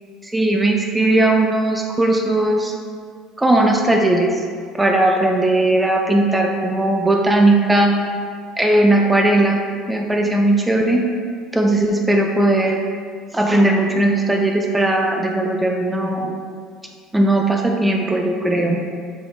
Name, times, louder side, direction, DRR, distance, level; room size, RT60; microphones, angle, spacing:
voice 1, 0.2-2.7 3.4-4.4 4.8-7.9 8.6-11.0 11.5-12.8 13.3-16.3 17.1-18.9, right 1 dB, 10° right, 1 dB, 0.3 m, -17 dB
4.5 x 2.3 x 3.0 m, 2.1 s
figure-of-eight pair, 65°, 0 cm